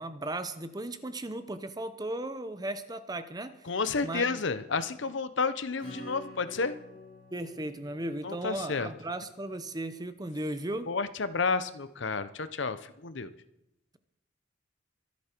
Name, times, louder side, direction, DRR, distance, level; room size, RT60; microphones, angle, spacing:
voice 1, 0.0-3.7 4.0-4.4 7.3-10.9, right 1 dB, 20° right, 11 dB, 0.8 m, -36 dB
voice 2, 3.7-6.7 8.2-8.9 10.9-13.3, left 4 dB, 65° left, 13 dB, 0.8 m, -31 dB
Acoustic guitar / Strum, 5.8-10.1, left 1 dB, 25° left, 7.2 m, -49 dB
24.5 x 8.5 x 4.6 m, 0.85 s
head